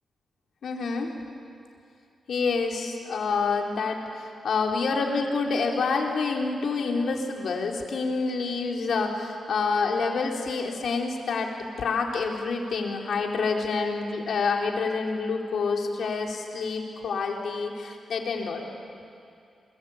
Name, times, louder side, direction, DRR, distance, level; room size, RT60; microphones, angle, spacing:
voice 1, 0.6-1.2 2.3-18.7, left 4 dB, 70° left, 0 dB, 3.8 m, -27 dB
29.5 x 22.5 x 8.7 m, 2.5 s
cardioid pair, 100°, 0 cm